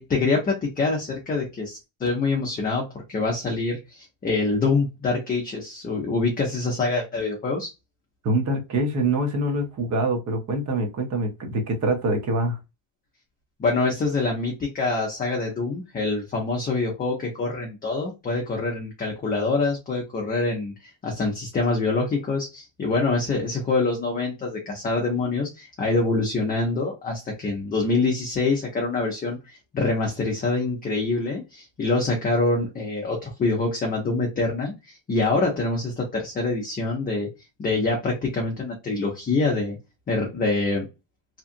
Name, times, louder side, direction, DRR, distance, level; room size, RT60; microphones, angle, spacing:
voice 1, 0.0-7.7 13.6-37.3 37.6-39.8 40.1-40.9, left 3 dB, 20° left, 0.7 m, -25 dB
voice 2, 8.2-12.6, right 2 dB, 35° right, 1.0 m, -25 dB
2.9 x 2.3 x 2.5 m
supercardioid pair, 125°, 47 cm